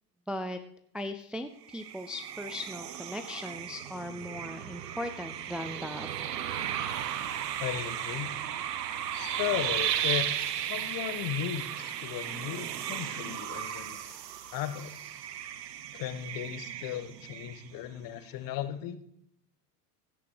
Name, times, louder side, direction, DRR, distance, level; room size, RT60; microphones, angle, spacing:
voice 1, 0.3-0.6 0.9-6.1, left 1 dB, ahead, 7 dB, 0.4 m, -38 dB
sound 1, 1.7-18.0, right 10 dB, 85° right, 1.0 m, -35 dB
voice 2, 7.6-8.4 9.1-14.0 14.5-14.9 15.9-19.0, left 11 dB, 45° left, 11 dB, 1.3 m, -36 dB
16.0 x 6.0 x 4.9 m, 0.69 s
hypercardioid pair, 100°, 47 cm